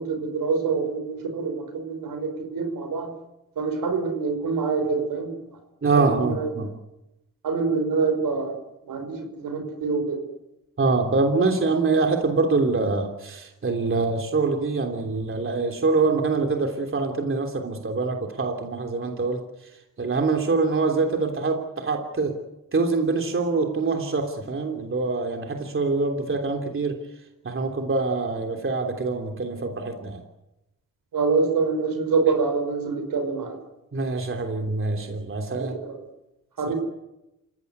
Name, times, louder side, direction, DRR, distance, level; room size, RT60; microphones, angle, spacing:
voice 1, 0.0-3.1 3.6-5.4 5.9-6.5 7.4-8.6 8.9-10.2 31.1-33.6 35.5-36.0 36.6-36.7, right 4 dB, 75° right, 6 dB, 5.6 m, -26 dB
voice 2, 5.8-6.7 10.8-19.4 20.0-22.3 22.7-27.0 27.4-30.2 33.9-35.7 36.7-36.8, right 3 dB, 35° right, 3 dB, 3.2 m, -24 dB
28.0 x 16.5 x 9.5 m, 0.94 s
cardioid pair, 85°, 34 cm